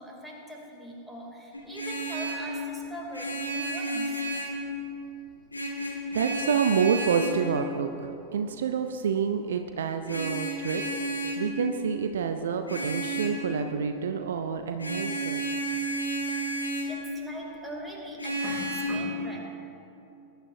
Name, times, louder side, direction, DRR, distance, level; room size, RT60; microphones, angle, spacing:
voice 1, 0.0-4.2 16.9-19.4, equal, ahead, -2 dB, 2.8 m, -40 dB
Vehicle horn car horn honking, 1.5-2.5 3.1-4.6 5.5-7.5 10.1-11.5 12.7-13.4 14.8-17.0 18.2-18.8, right 2 dB, 80° left, 2.0 m, -31 dB
voice 2, 5.8-15.4, right 6 dB, 65° right, 7 dB, 0.6 m, -28 dB
20.5 x 11.5 x 2.7 m, 2.8 s
figure-of-eight pair, 90°, 0 cm